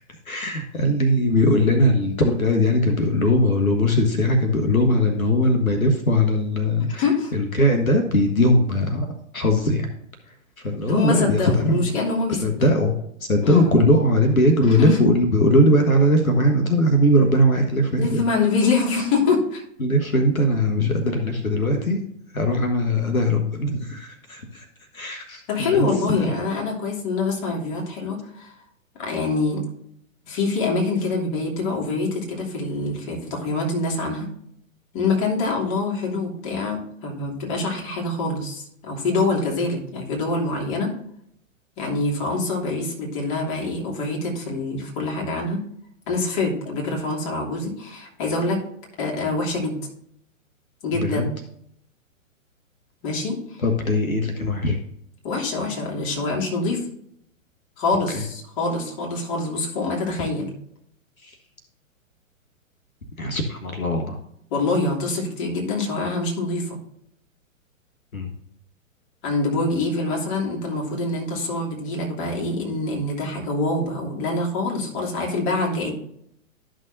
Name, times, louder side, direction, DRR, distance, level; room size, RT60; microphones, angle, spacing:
voice 1, 0.3-7.0 7.3-9.9 10.6-11.9 12.3-12.9 13.2-18.2 19.8-22.0 22.3-24.7 24.9-26.3 50.9-51.2 53.6-54.8 58.1-58.2 61.2-61.3 63.2-64.2 68.1-68.3, left 1 dB, 90° left, 4 dB, 1.4 m, -20 dB
voice 2, 7.0-7.3 10.9-12.7 13.4-13.7 14.8-15.0 18.0-19.6 25.5-28.5 29.0-29.6 30.2-34.3 34.9-40.9 41.8-45.6 46.1-48.6 49.0-49.8 50.8-51.4 53.0-53.4 55.2-56.8 57.8-60.5 64.5-66.8 69.2-75.9, left 3 dB, 35° left, -1 dB, 3.0 m, -25 dB
12.5 x 6.4 x 2.7 m, 0.71 s
figure-of-eight pair, 120°, 41 cm